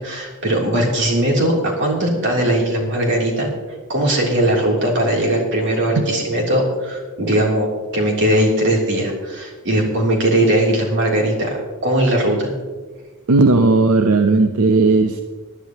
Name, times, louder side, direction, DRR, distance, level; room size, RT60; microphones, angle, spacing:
voice 1, 0.0-3.5 3.9-12.5, right 1 dB, 60° right, -1 dB, 3.2 m, -19 dB
voice 2, 13.3-15.2, right 3 dB, 85° right, 7 dB, 0.7 m, -15 dB
20.0 x 11.0 x 3.0 m, 1.4 s
head